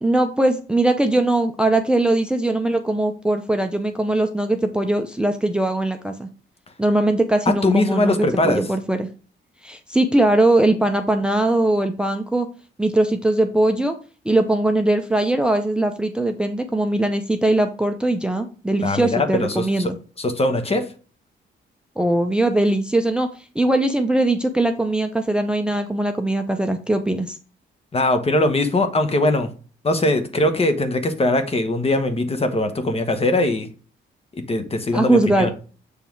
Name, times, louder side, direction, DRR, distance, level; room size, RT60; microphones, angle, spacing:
voice 1, 0.0-6.3 6.8-9.1 9.6-12.5 12.8-13.9 14.2-20.0 22.0-27.4 34.9-35.5, right 1 dB, 5° right, 6 dB, 0.6 m, -20 dB
voice 2, 7.5-8.6 18.8-19.9 20.2-20.8 27.9-29.5 29.8-33.7 34.3-35.5, left 2 dB, 30° left, 7 dB, 1.1 m, -21 dB
7.3 x 3.4 x 4.6 m, 0.37 s
cardioid pair, 100°, 20 cm